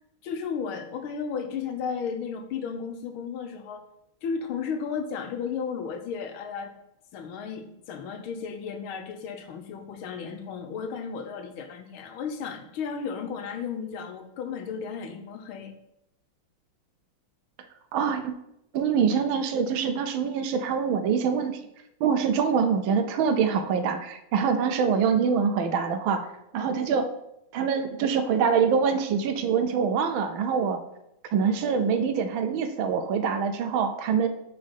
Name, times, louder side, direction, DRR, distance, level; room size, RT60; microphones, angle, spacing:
voice 1, 0.2-3.8 4.2-6.7 7.1-15.7, left 6 dB, 80° left, 7 dB, 1.6 m, -34 dB
voice 2, 17.9-18.3 18.7-21.6 22.0-26.3 26.5-27.1 27.5-30.8 31.3-34.3, right 6 dB, 75° right, 9 dB, 1.4 m, -24 dB
7.0 x 4.3 x 5.2 m, 0.82 s
omnidirectional pair, 2.3 m